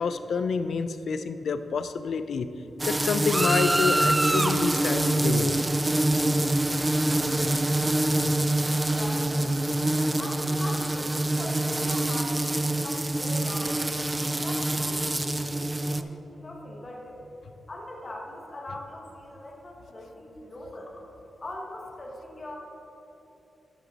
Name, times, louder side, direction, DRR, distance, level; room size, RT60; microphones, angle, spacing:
voice 1, 0.0-2.5 2.9-5.6, left 5 dB, 75° left, 10 dB, 0.4 m, -28 dB
sound 1, 2.8-16.0, right 1 dB, 15° right, 0.3 m, -25 dB
voice 2, 8.6-9.6 10.2-13.8 14.3-15.1 15.4-17.2 17.7-20.9 21.4-22.6, left 1 dB, 30° left, -1 dB, 1.1 m, -41 dB
11.0 x 6.2 x 4.0 m, 3.0 s
wide cardioid pair, 125°, 0 cm